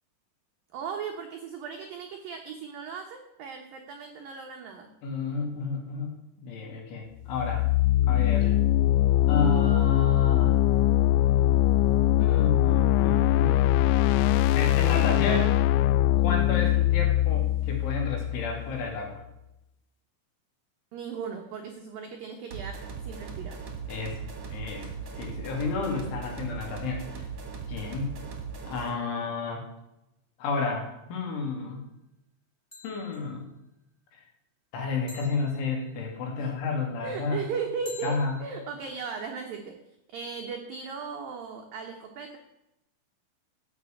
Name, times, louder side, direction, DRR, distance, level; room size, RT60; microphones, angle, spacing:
voice 1, 0.7-4.9 20.9-23.6 36.4-36.5 37.0-39.8 40.1-42.4, right 5 dB, 85° right, 3 dB, 2.0 m, -37 dB
voice 2, 5.0-7.7 8.1-8.6 9.3-10.6 12.2-13.6 14.6-15.6 16.2-19.2 23.9-24.3 24.5-27.3 27.7-28.2 28.6-29.7 30.4-31.8 32.8-33.5 34.1-34.2 34.7-37.5 38.0-38.4, left 4 dB, 70° left, 1 dB, 4.7 m, -31 dB
sound 1, 7.3-19.0, left 15 dB, 85° left, 3.3 m, -22 dB
sound 2, 22.5-29.0, right 5 dB, 45° right, 2.1 m, -39 dB
sound 3, 31.2-31.5 32.7-33.4 35.1-36.2 37.8-38.8, left 3 dB, 10° left, 1.8 m, -49 dB
14.5 x 7.0 x 8.9 m, 0.88 s
omnidirectional pair, 6.0 m